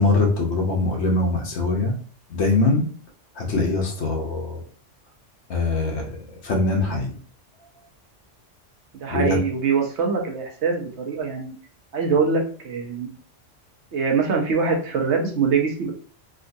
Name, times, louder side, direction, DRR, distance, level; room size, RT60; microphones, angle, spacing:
voice 1, 0.0-1.9 2.3-2.8 3.4-4.6 5.5-6.1 6.4-7.1 9.1-9.4, left 3 dB, 70° left, 0 dB, 1.1 m, -22 dB
voice 2, 8.9-11.5 11.9-13.1 13.9-15.9, right 5 dB, 75° right, 1 dB, 1.0 m, -23 dB
3.7 x 2.4 x 2.6 m, 0.43 s
omnidirectional pair, 1.2 m